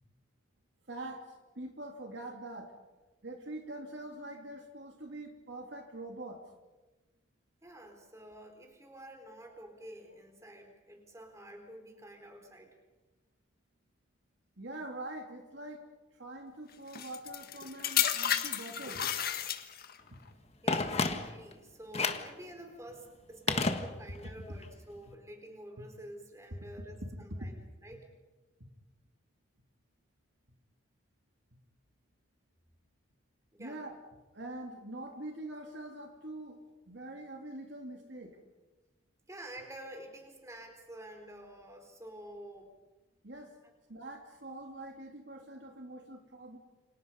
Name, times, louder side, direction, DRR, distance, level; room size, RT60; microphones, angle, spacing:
voice 1, 0.9-1.3 1.5-2.7 3.2-6.4 14.6-15.9 16.1-19.0 26.7-26.8 27.3-27.5 33.6-34.0 34.3-38.4 43.2-43.5 43.9-46.6, right 1 dB, 60° right, 3 dB, 3.0 m, -44 dB
voice 2, 7.6-12.7 20.6-28.1 33.5-33.8 39.3-42.7, right 1 dB, 15° right, 3 dB, 4.3 m, -49 dB
sound 1, 16.9-20.0 20.8-21.1, left 9 dB, 50° left, 1.6 m, -32 dB
Telephone, 20.7-21.5 21.9-22.4 23.5-24.3 24.6-24.7, left 3 dB, 30° left, 1.5 m, -31 dB
29.0 x 26.5 x 5.5 m, 1.2 s
head